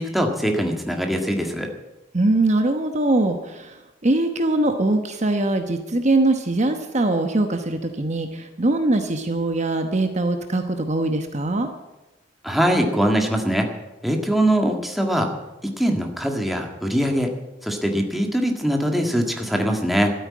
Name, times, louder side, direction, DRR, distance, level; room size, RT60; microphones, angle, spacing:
voice 1, 0.0-1.7 12.4-13.7 14.0-15.3 15.6-17.3 17.6-20.1, equal, ahead, 2 dB, 1.7 m, -22 dB
voice 2, 2.1-11.7, right 2 dB, 40° right, 6 dB, 1.1 m, -22 dB
13.0 x 9.1 x 9.5 m, 1.0 s
head